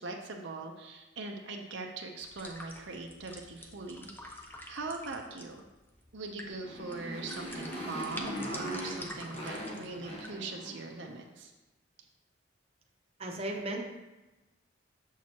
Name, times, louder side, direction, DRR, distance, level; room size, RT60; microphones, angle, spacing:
voice 1, 0.0-5.6 6.1-11.5, right 3 dB, 70° right, 2 dB, 0.7 m, -41 dB
sound 1, 2.2-10.3, left 1 dB, 10° left, 0.5 m, -48 dB
Motorcycle, 6.4-11.0, equal, 30° left, 1.0 m, -40 dB
voice 2, 13.2-13.8, right 1 dB, 30° right, 0 dB, 0.8 m, -35 dB
7.2 x 6.0 x 2.9 m, 1.1 s
head